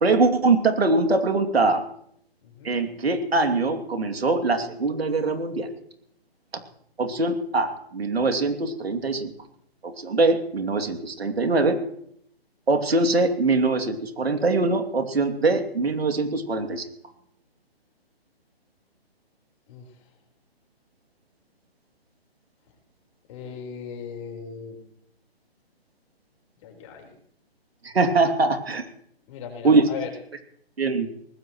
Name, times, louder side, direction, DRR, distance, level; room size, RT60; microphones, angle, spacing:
voice 1, 0.0-1.8 2.6-5.7 7.0-9.3 9.8-11.8 12.7-16.8 27.8-28.8 29.6-29.8 30.8-31.1, right 3 dB, 75° right, 5 dB, 2.7 m, -22 dB
voice 2, 2.4-2.7 19.7-20.0 23.3-24.9 26.6-27.1 29.3-30.1, left 6 dB, 30° left, 1 dB, 4.4 m, -38 dB
21.0 x 20.0 x 3.1 m, 0.69 s
hypercardioid pair, 150°, 31 cm